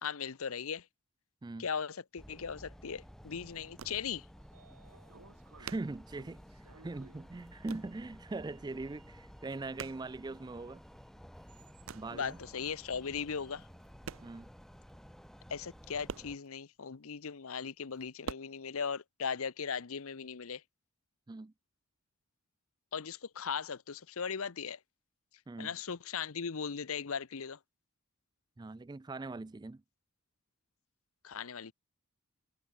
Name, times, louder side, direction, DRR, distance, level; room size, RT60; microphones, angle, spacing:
voice 1, 0.0-0.8 1.6-4.2 12.1-13.6 15.5-20.6 22.9-24.8 25.6-27.6 31.2-31.7, left 6 dB, 70° left, 0.8 m, -38 dB
sound 1, 2.2-16.4, equal, ahead, 1.3 m, -54 dB
sound 2, 3.2-4.4 4.7-4.8 5.0-6.8 7.1-8.0 8.3-8.9 9.2-10.8 11.2-12.3 13.0-13.1 13.7-14.6 14.9-15.0 15.2-15.3 15.6-17.0 17.5-18.3, right 6 dB, 65° right, 0.6 m, -47 dB
Sliding door, 4.3-14.1, right 3 dB, 90° right, 6.1 m, -64 dB
voice 2, 5.6-10.8 11.9-12.4 14.2-14.5 21.3-21.5 25.5-25.7 28.6-29.8, right 3 dB, 20° right, 0.3 m, -41 dB
head